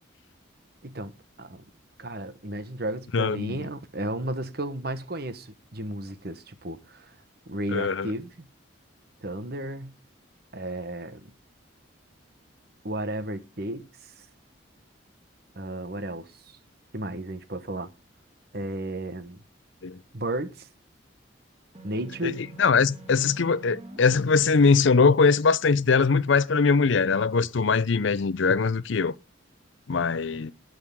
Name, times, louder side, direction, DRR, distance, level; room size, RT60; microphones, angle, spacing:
voice 1, 2.0-7.1 7.5-8.5 9.2-10.0 10.5-11.3 12.8-14.3 15.6-16.6 16.9-17.9 18.5-19.4 20.1-20.7 21.8-22.4, right 1 dB, 50° right, 1.2 m, -33 dB
voice 2, 3.1-3.6 7.7-8.1 19.8-20.0 22.2-22.3 22.6-29.1 29.9-30.5, left 5 dB, 70° left, 0.5 m, -21 dB
sound 1, 21.7-24.0, right 2 dB, 30° right, 1.8 m, -46 dB
19.0 x 6.4 x 3.6 m
head